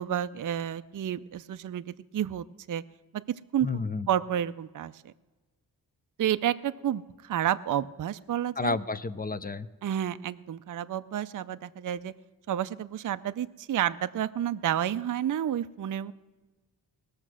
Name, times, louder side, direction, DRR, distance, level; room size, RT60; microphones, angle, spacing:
voice 1, 0.0-2.8 3.5-5.1 6.2-8.8 9.8-12.1 12.5-16.1, right 10 dB, 50° right, 12 dB, 0.5 m, -30 dB
voice 2, 3.6-4.1 8.6-9.7, left 4 dB, 25° left, 14 dB, 0.5 m, -31 dB
19.5 x 6.6 x 6.2 m, 1.2 s
wide cardioid pair, 80°, 41 cm